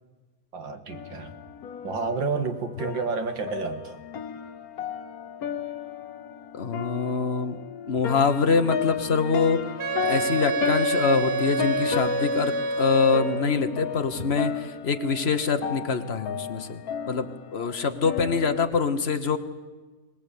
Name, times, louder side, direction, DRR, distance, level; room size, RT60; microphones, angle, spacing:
voice 1, 0.5-1.4 1.8-4.0, right 4 dB, 85° right, 7 dB, 2.5 m, -30 dB
sound 1, 0.9-18.6, left 9 dB, 60° left, 1.3 m, -34 dB
voice 2, 6.5-7.6 7.9-9.6 10.0-16.8 17.1-19.4, left 5 dB, 40° left, 8 dB, 1.3 m, -24 dB
Wind instrument woodwind instrument, 9.8-13.5, right 3 dB, 55° right, 1.9 m, -27 dB
23.0 x 19.5 x 8.5 m, 1.3 s
omnidirectional pair, 2.0 m